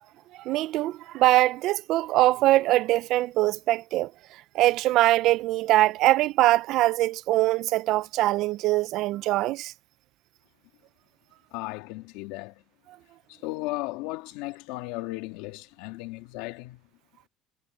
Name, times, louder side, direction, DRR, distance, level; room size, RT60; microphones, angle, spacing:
voice 1, 0.4-4.1 4.5-9.7, right 16 dB, 60° right, 0.5 m, -22 dB
voice 2, 11.5-12.6 13.3-16.8, left 20 dB, 80° left, 2.4 m, -35 dB
cardioid pair, 145°, 0 cm